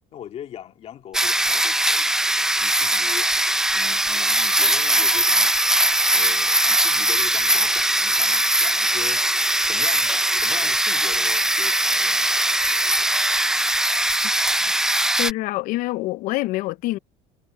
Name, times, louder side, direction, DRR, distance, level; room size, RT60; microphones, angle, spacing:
voice 1, 0.1-2.1 2.6-3.3 3.7-5.5 6.1-9.2 9.6-12.3, left 10 dB, 40° left, 2.7 m, -41 dB
sound 1, 1.1-15.3, right 1 dB, 5° right, 0.4 m, -20 dB
voice 2, 15.2-17.0, left 18 dB, 55° left, 0.5 m, -26 dB
cardioid pair, 145°, 16 cm